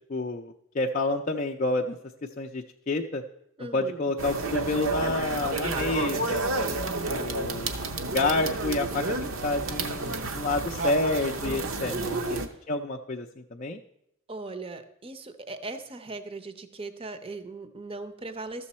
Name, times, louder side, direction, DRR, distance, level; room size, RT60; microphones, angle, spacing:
voice 1, 0.1-2.0 2.4-3.2 3.7-6.4 7.1-7.7 8.1-12.4 12.7-13.8, left 2 dB, 35° left, 1 dB, 0.4 m, -29 dB
voice 2, 3.6-4.1 6.5-7.4 11.4-12.0 12.3-12.6 14.3-18.7, right 3 dB, 25° right, 10 dB, 0.6 m, -39 dB
sound 1, 4.2-12.5, right 3 dB, 70° right, 0.8 m, -30 dB
13.0 x 6.9 x 4.2 m, 0.79 s
head